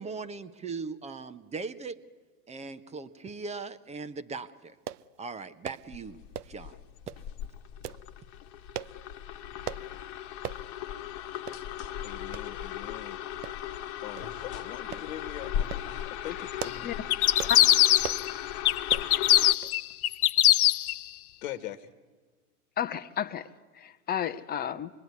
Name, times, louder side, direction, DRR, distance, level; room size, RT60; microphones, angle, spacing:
voice 1, 0.0-2.0 2.5-4.8 5.2-6.8, right 4 dB, 15° right, 11 dB, 0.9 m, -39 dB
sound 1, 4.9-5.1 5.6-5.9 6.3-6.6 7.1-7.3 7.8-8.0 8.7-9.0 9.7-9.9 10.4-10.6 11.0-11.1 11.5-11.6 12.3-12.5 13.4-13.8 14.2-14.3 14.9-15.1 15.6-15.9 16.4-16.9 17.4-17.6 18.0-18.3 18.9-19.1 19.6-19.8 20.1-20.2, right 10 dB, 85° right, 0.8 m, -38 dB
sound 2, 5.8-19.6, left 10 dB, 40° left, 1.4 m, -38 dB
voice 2, 12.0-13.2 14.0-16.9 21.4-21.9, left 12 dB, 60° left, 10 dB, 1.5 m, -42 dB
sound 3, 17.1-18.3 18.7-21.0, left 13 dB, 75° left, 0.8 m, -21 dB
voice 3, 17.4-17.8 22.8-23.5 23.8-24.9, left 9 dB, 20° left, 12 dB, 0.8 m, -32 dB
26.5 x 21.0 x 9.5 m, 1.4 s
hypercardioid pair, 115°, 44 cm